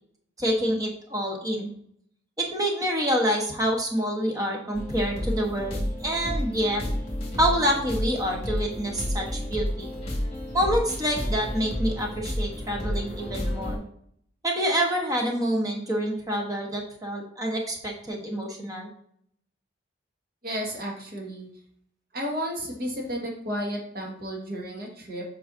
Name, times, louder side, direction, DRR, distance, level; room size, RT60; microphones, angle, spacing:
voice 1, 0.4-1.7 2.4-6.8 7.4-9.9 10.5-13.8 14.4-18.9, equal, 20° right, 0 dB, 1.2 m, -27 dB
sound 1, 4.7-13.8, equal, 30° left, 1.8 m, -31 dB
voice 2, 20.4-21.5 22.1-25.2, equal, 50° right, -1 dB, 1.7 m, -32 dB
7.7 x 4.9 x 2.7 m, 0.68 s
head